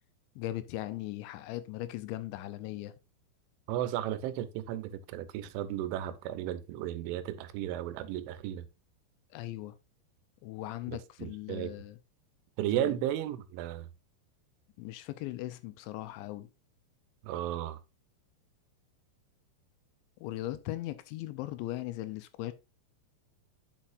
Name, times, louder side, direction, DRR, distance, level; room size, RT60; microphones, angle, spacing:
voice 1, 0.4-2.9 9.3-9.8 10.4-12.0 12.8-13.0 14.8-16.5 20.2-22.5, left 15 dB, 85° left, 2.8 m, -38 dB
voice 2, 3.7-8.7 10.9-11.8 12.6-13.9 17.2-17.8, right 12 dB, 90° right, 3.2 m, -34 dB
9.0 x 6.5 x 2.5 m
omnidirectional pair, 5.4 m